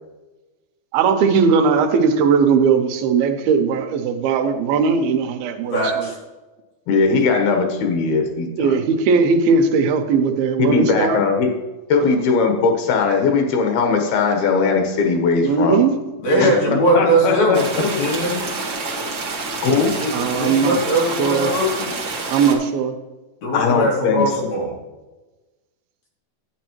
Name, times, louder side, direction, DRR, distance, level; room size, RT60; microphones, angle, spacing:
voice 1, 0.9-6.1 8.6-11.2 12.0-12.2 15.4-15.9 16.3-16.8 20.1-20.8 21.2-21.5 22.3-22.9, right 5 dB, 90° right, 6 dB, 2.6 m, -18 dB
voice 2, 5.7-6.2 16.2-18.5 20.0-21.9 23.4-24.7, right 1 dB, 55° left, -4 dB, 3.6 m, -20 dB
voice 3, 6.9-8.8 10.6-11.5 11.9-15.8 16.4-16.5 16.9-17.8 19.6-19.9 23.5-24.2, left 4 dB, 85° left, 4 dB, 3.1 m, -19 dB
sound 1, 17.5-22.5, right 3 dB, 70° right, 1.1 m, -28 dB
11.0 x 8.8 x 3.0 m, 1.2 s
omnidirectional pair, 4.2 m